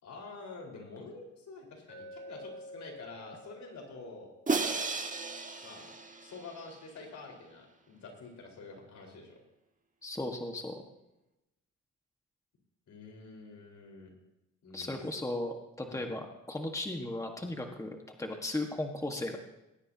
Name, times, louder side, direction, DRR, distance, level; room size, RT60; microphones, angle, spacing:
voice 1, 0.0-4.3 4.6-4.9 5.6-9.4 12.9-14.1 14.6-15.0 15.9-16.0, left 3 dB, 65° left, 0 dB, 4.8 m, -48 dB
Glass, 1.9-6.0, equal, 35° left, 7.2 m, -51 dB
Crash cymbal, 4.5-6.7, right 4 dB, 25° right, 1.6 m, -34 dB
voice 2, 10.0-10.8 14.7-19.4, left 1 dB, 10° left, 3 dB, 1.6 m, -36 dB
20.0 x 18.0 x 2.9 m, 0.94 s
cardioid pair, 90°, 30 cm